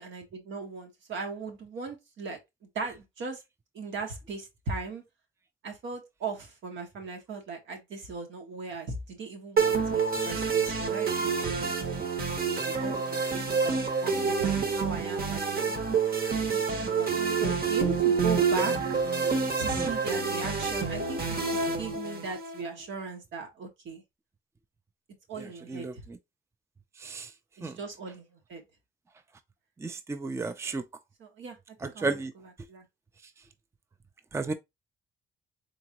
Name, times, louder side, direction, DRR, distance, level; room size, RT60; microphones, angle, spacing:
voice 1, 0.0-2.4 2.7-3.4 3.7-5.0 5.6-15.7 16.5-19.0 19.6-21.2 21.5-24.0 25.3-26.0 27.6-28.6 31.2-32.8, right 4 dB, 75° right, 1.5 m, -38 dB
sound 1, 9.6-22.6, right 5 dB, 50° right, 1.3 m, -28 dB
voice 2, 25.4-26.2 27.0-27.3 27.6-27.8 29.8-30.8 31.8-32.3 34.3-34.5, right 3 dB, 15° right, 0.5 m, -33 dB
3.8 x 3.6 x 2.9 m
cardioid pair, 90°, 20 cm